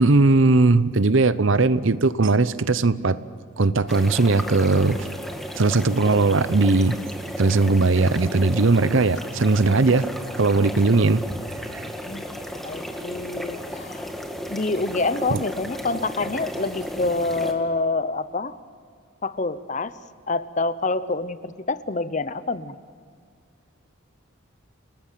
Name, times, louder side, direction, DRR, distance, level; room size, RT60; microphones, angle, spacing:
voice 1, 0.0-3.2 3.6-5.1 5.6-7.0 7.4-10.1 10.4-11.2 11.7-11.8 15.3-15.4, right 3 dB, 65° right, 15 dB, 0.8 m, -19 dB
sound 1, 3.9-17.5, equal, ahead, 1.9 m, -34 dB
voice 2, 12.1-12.4 12.6-14.1 14.5-18.6 19.2-20.0 20.3-22.8, left 3 dB, 35° left, 14 dB, 0.8 m, -27 dB
30.0 x 19.5 x 7.6 m, 2.2 s
head